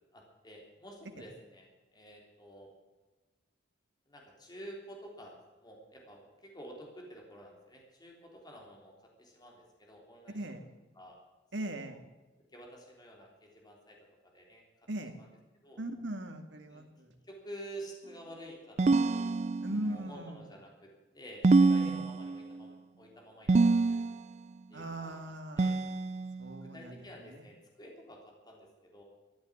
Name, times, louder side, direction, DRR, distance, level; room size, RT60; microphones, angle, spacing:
voice 1, 0.1-2.7 4.1-8.9 9.2-10.4 11.0-11.2 11.8-12.0 12.5-14.0 14.2-14.6 15.6-15.8 16.7-16.9 17.2-19.3 19.8-20.9 21.1-24.0 24.7-25.2 25.6-25.8 26.4-29.0, right 1 dB, 20° left, -1 dB, 3.5 m, -50 dB
voice 2, 11.5-12.0 14.9-15.1 15.8-17.1 19.6-20.4 21.8-21.9 24.7-26.1 26.4-27.5, right 1 dB, 70° right, 5 dB, 2.2 m, -39 dB
Victory Bells Chords Success sound effect, 18.8-20.0 21.4-22.6 23.5-24.4 25.6-26.6, right 3 dB, 35° right, 0.4 m, -26 dB
14.5 x 11.0 x 8.8 m, 1.2 s
head